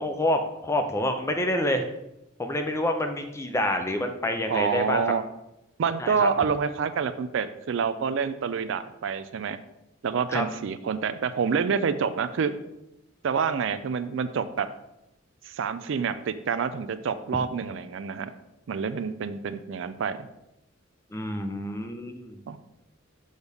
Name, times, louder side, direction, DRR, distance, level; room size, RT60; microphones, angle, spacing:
voice 1, 0.0-1.8 2.4-5.0 6.0-6.3 10.3-10.4 21.1-22.4, left 1 dB, 15° left, 5 dB, 0.5 m, -27 dB
voice 2, 4.5-5.2 5.8-9.6 10.0-12.5 13.2-14.7 15.5-18.3 18.7-20.3 22.5-22.6, right 6 dB, 65° right, 12 dB, 0.4 m, -27 dB
6.3 x 5.3 x 3.5 m, 0.88 s
head